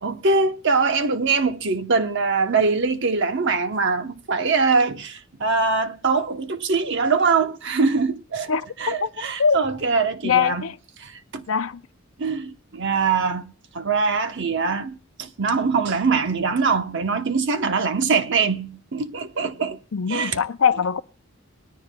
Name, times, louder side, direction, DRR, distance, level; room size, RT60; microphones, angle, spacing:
voice 1, 0.0-8.5 8.8-10.6 11.0-11.5 12.2-19.8 20.1-20.4, right 4 dB, 60° right, 0.9 m, -23 dB
voice 2, 10.2-10.7 11.5-11.8 19.9-21.0, left 6 dB, 80° left, 0.6 m, -21 dB
20.5 x 13.0 x 2.3 m
head